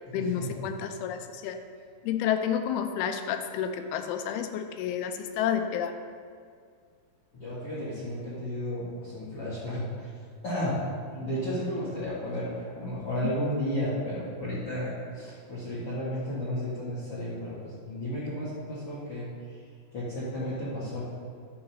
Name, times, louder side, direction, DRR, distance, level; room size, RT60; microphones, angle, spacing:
voice 1, 0.1-1.6 2.0-6.0 13.2-13.3, left 8 dB, 90° left, 7 dB, 2.6 m, -30 dB
voice 2, 7.3-10.1 10.4-10.8 11.1-19.3 19.9-21.1, equal, 45° left, -10 dB, 2.2 m, -33 dB
12.0 x 4.2 x 6.4 m, 2.1 s
omnidirectional pair, 4.4 m